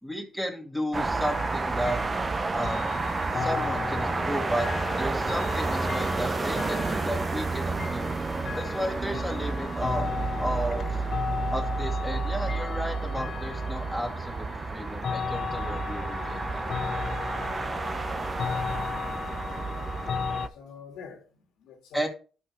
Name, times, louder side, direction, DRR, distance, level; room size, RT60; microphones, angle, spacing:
voice 1, 0.0-2.0 2.5-2.8 3.3-8.1 8.5-10.1 10.4-10.9 11.5-14.5 14.7-16.6 21.9-22.1, equal, ahead, 2.4 m, -33 dB
sound 1, 0.9-20.5, right 3 dB, 30° right, 0.8 m, -31 dB
sound 2, 1.3-20.5, left 6 dB, 50° left, 0.6 m, -36 dB
voice 2, 17.3-17.7 19.5-19.6 20.2-22.1, left 6 dB, 90° left, 2.1 m, -47 dB
11.5 x 5.6 x 3.1 m
cardioid pair, 90°, 0 cm